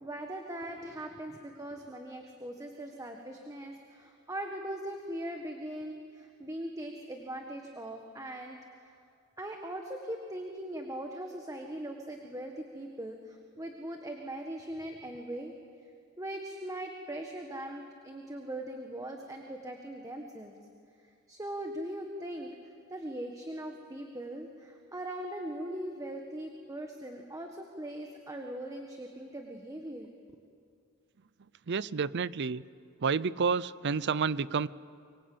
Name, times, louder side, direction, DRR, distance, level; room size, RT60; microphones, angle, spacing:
voice 1, 0.0-8.6 8.8-8.9 9.4-15.5 16.2-20.5 21.3-22.5 22.9-30.1, right 1 dB, 15° right, 3 dB, 1.6 m, -40 dB
voice 2, 31.7-32.6 33.0-34.7, right 5 dB, 55° right, 19 dB, 0.6 m, -29 dB
25.0 x 22.5 x 8.7 m, 2.3 s
head